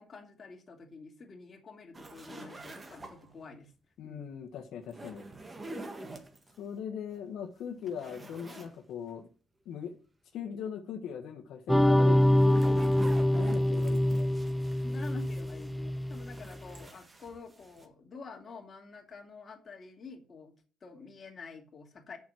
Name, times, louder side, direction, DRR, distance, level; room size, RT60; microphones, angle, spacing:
voice 1, 0.0-3.7 4.0-4.3 14.8-20.5 20.8-22.2, left 4 dB, 40° left, 2 dB, 2.5 m, -48 dB
sound 1, 1.9-3.4 4.8-6.6 7.1-7.2 7.6-8.8 9.1-9.2 12.0-15.8 16.1-17.9, right 2 dB, 25° right, 1.8 m, -47 dB
voice 2, 4.0-5.2 6.6-9.3 9.6-10.0 10.3-12.9 13.3-14.3, left 8 dB, 80° left, 3 dB, 1.2 m, -40 dB
sound 2, 11.7-16.5, left 1 dB, ahead, 0.5 m, -25 dB
7.1 x 6.1 x 7.6 m, 0.39 s
cardioid pair, 90°, 0 cm